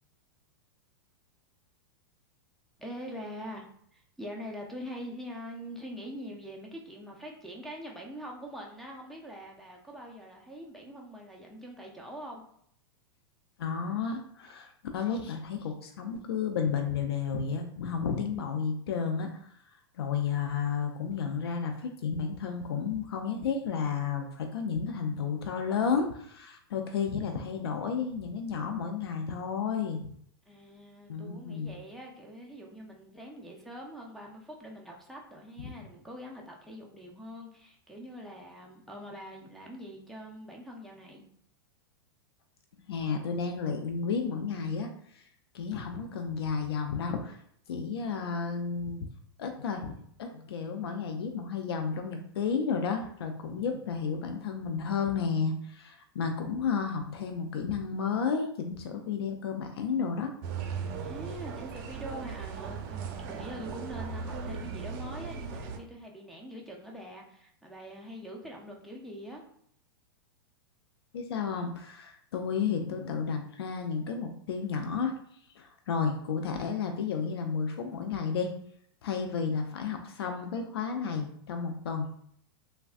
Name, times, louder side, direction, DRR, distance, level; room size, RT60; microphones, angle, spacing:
voice 1, 2.8-12.4 30.5-41.2 60.9-69.4, equal, ahead, -2 dB, 0.4 m, -44 dB
voice 2, 13.6-19.5 20.0-30.1 31.1-31.7 42.7-45.3 45.5-47.4 47.7-49.1 49.4-49.9 50.2-60.3 71.1-75.1 75.6-78.5 79.0-82.1, left 6 dB, 85° left, 4 dB, 0.4 m, -32 dB
sound 1, 60.4-65.8, right 6 dB, 55° right, 0.5 m, -38 dB
3.3 x 2.1 x 2.4 m, 0.66 s
hypercardioid pair, 120°, 13 cm